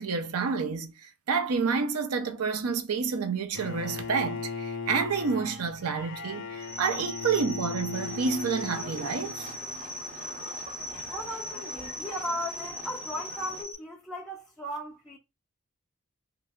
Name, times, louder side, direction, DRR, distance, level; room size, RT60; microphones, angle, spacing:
voice 1, 0.0-9.5, right 5 dB, 80° right, 0.5 m, -29 dB
Bowed string instrument, 3.5-9.7, left 5 dB, 55° left, 0.5 m, -38 dB
sound 1, 6.6-13.7, left 1 dB, 50° right, 1.0 m, -39 dB
Livestock farm animals working animals, 7.9-13.6, equal, 30° right, 0.8 m, -44 dB
voice 2, 11.1-15.2, equal, ahead, 0.5 m, -37 dB
3.2 x 2.0 x 3.5 m
head